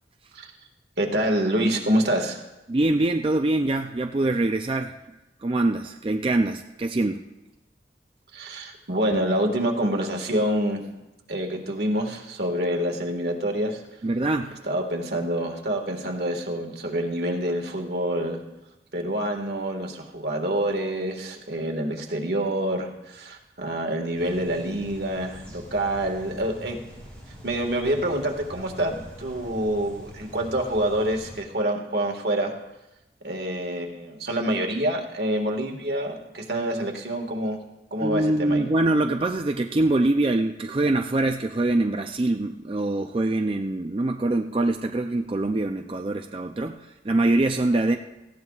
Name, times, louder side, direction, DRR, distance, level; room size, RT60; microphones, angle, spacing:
voice 1, 1.0-2.4 8.3-10.8 11.3-13.8 14.7-18.4 18.9-26.8 27.4-32.5 33.2-37.6 37.9-38.7, right 1 dB, 70° right, 2 dB, 1.7 m, -27 dB
voice 2, 2.7-4.9 5.4-7.2 14.0-14.6 38.0-48.0, right 2 dB, 30° right, 4 dB, 0.4 m, -24 dB
sound 1, 24.1-31.4, equal, 5° left, 5.0 m, -44 dB
18.5 x 15.0 x 2.4 m, 1.0 s
head